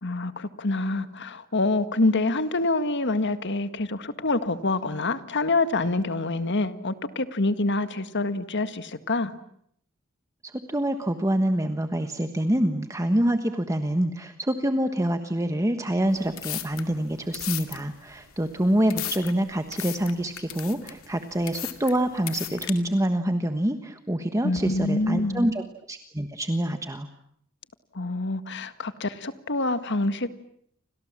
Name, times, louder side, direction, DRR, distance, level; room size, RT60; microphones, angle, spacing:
voice 1, 0.0-9.3 24.4-25.5 27.9-30.3, left 2 dB, 55° left, 11 dB, 1.8 m, -26 dB
voice 2, 10.4-25.6 25.9-27.1, right 1 dB, 15° right, 7 dB, 1.3 m, -26 dB
sound 1, 16.1-22.7, left 13 dB, 75° left, 2.4 m, -37 dB
30.0 x 26.0 x 7.5 m, 0.70 s
head